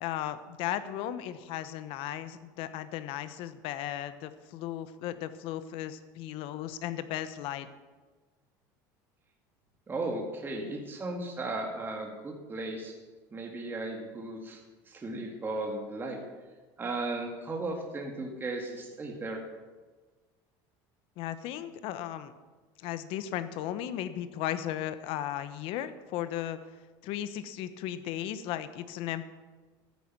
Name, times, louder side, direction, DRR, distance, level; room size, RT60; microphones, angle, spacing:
voice 1, 0.0-7.7 21.2-22.3 22.8-26.6 27.0-29.2, left 11 dB, 65° left, 12 dB, 1.0 m, -36 dB
voice 2, 9.9-12.9 13.3-16.2 16.8-19.4, right 2 dB, 20° right, 1 dB, 2.0 m, -36 dB
14.0 x 9.9 x 6.1 m, 1.3 s
supercardioid pair, 125°, 10 cm